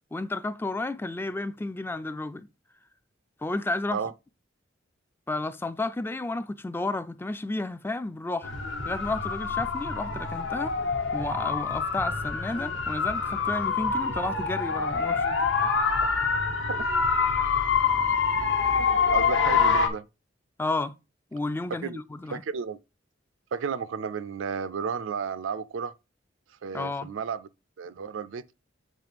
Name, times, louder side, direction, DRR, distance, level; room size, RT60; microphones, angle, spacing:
voice 1, 0.1-2.5 3.4-4.0 5.3-8.5 8.9-10.7 11.1-15.4 20.6-20.9 21.3-22.4 26.7-27.1, left 2 dB, 10° left, 0.3 m, -32 dB
sound 1, 8.4-19.9, left 5 dB, 70° left, 1.1 m, -26 dB
voice 2, 19.1-20.1 21.8-22.0 22.3-22.8 23.5-25.9 26.6-27.5 27.8-28.4, right 6 dB, 80° right, 0.4 m, -32 dB
7.5 x 3.1 x 5.1 m
head